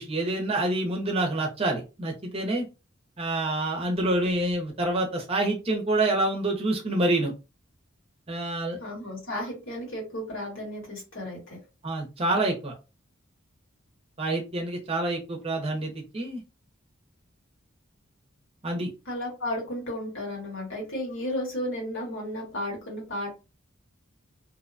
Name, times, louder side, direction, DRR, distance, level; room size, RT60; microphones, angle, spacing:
voice 1, 0.0-2.6 3.2-7.3 8.3-8.8 11.8-12.7 14.2-16.4 18.6-18.9, right 2 dB, 30° right, 1 dB, 0.7 m, -27 dB
voice 2, 8.8-11.6 19.1-23.4, left 1 dB, 70° left, -2 dB, 1.5 m, -33 dB
2.7 x 2.1 x 2.5 m, 0.29 s
head